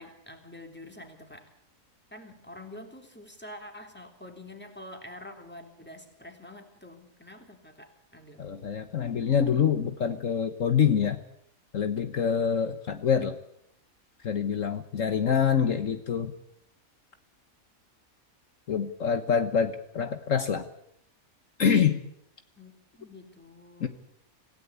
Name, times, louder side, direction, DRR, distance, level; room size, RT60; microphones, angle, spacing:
voice 1, 0.0-1.5 2.1-8.4 22.6-23.9, left 1 dB, 5° left, 4 dB, 3.3 m, -47 dB
voice 2, 8.4-11.2 11.7-13.4 14.2-16.3 18.7-20.7 21.6-22.0 23.8-23.9, left 7 dB, 65° left, 9 dB, 1.6 m, -26 dB
27.0 x 16.5 x 8.4 m, 0.75 s
omnidirectional pair, 1.5 m